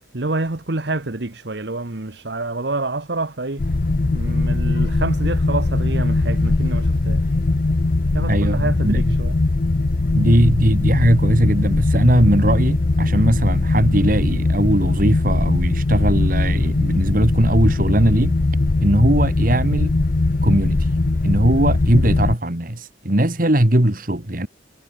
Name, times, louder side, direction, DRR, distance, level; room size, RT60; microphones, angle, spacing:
voice 1, 0.1-3.7 4.1-7.2 8.1-9.4, right 2 dB, 60° right, 1.3 m, -27 dB
sound 1, 3.6-22.4, left 2 dB, 45° left, 0.6 m, -20 dB
voice 2, 8.3-9.0 10.1-18.4 18.8-19.9 20.4-20.9 21.2-24.5, right 1 dB, 45° right, 2.4 m, -19 dB
head